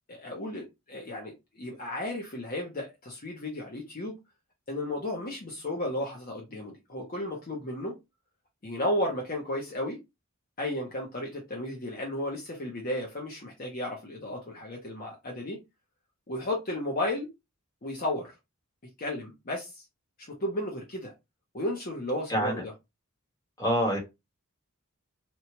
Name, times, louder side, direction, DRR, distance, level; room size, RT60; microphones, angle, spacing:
voice 1, 0.1-4.1 4.7-7.9 8.6-10.0 10.6-15.6 16.3-17.3 17.8-18.3 19.0-19.8 20.2-21.1 21.5-22.7, left 1 dB, 40° left, 0.7 m, -33 dB
voice 2, 23.6-24.0, equal, 15° left, 1.1 m, -25 dB
2.9 x 2.2 x 2.8 m
head